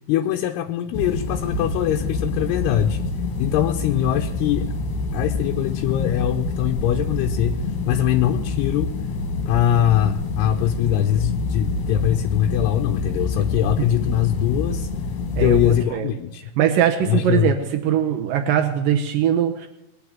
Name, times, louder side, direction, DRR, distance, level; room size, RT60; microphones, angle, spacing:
voice 1, 0.1-3.0 3.4-4.7 5.1-8.9 9.5-14.9 15.4-16.5 17.0-17.6, left 11 dB, 80° left, 5 dB, 2.4 m, -22 dB
sound 1, 0.9-15.9, left 3 dB, 60° left, 2.5 m, -26 dB
voice 2, 16.6-19.7, right 10 dB, 85° right, 4 dB, 1.9 m, -21 dB
20.0 x 9.0 x 7.4 m, 0.86 s
omnidirectional pair, 5.3 m